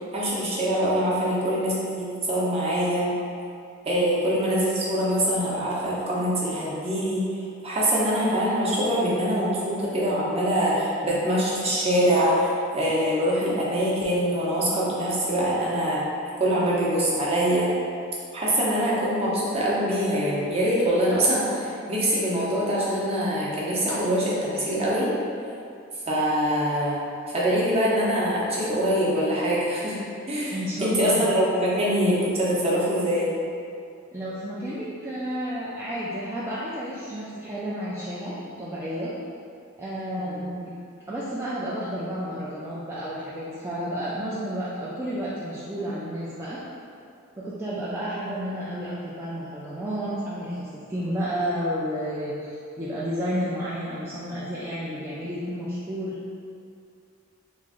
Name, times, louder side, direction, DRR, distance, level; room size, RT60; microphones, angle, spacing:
voice 1, 0.1-3.1 3.8-7.2 7.6-16.0 16.4-17.7 18.3-25.1 26.1-27.0 27.3-30.0 30.3-33.3 40.1-40.4, equal, 30° right, -6 dB, 0.7 m, -24 dB
voice 2, 30.5-31.2 34.1-39.1 39.8-40.7 41.1-46.6 47.4-56.2, equal, 10° right, -9 dB, 0.3 m, -31 dB
3.1 x 2.5 x 3.6 m, 2.4 s
head